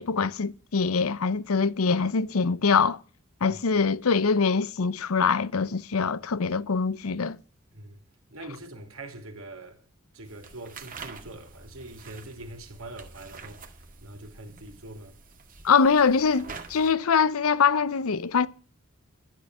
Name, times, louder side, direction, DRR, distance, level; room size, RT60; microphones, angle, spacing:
voice 1, 0.0-3.0 3.4-7.4 15.6-18.5, left 5 dB, 85° left, 0.7 m, -23 dB
voice 2, 7.7-8.0 8.3-9.8 10.1-13.7 14.0-15.1, right 2 dB, 70° right, 3.0 m, -43 dB
sound 1, 10.2-16.9, right 4 dB, 40° right, 1.9 m, -46 dB
12.0 x 10.0 x 6.1 m
head